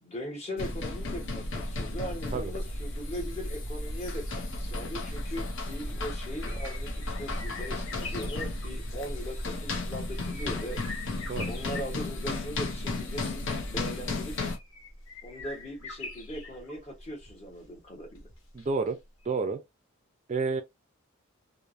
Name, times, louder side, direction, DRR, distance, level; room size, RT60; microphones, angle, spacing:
voice 1, 0.0-10.8 11.5-14.3 15.2-18.3, equal, 30° left, 0.9 m, -40 dB
sound 1, 0.6-14.6, left 2 dB, 60° left, 0.7 m, -34 dB
sound 2, 3.1-18.9 19.2-19.3, left 3 dB, 75° left, 1.1 m, -46 dB
voice 2, 18.5-19.0 19.3-19.6 20.3-20.6, right 4 dB, 35° right, 0.4 m, -29 dB
3.2 x 2.0 x 2.4 m
head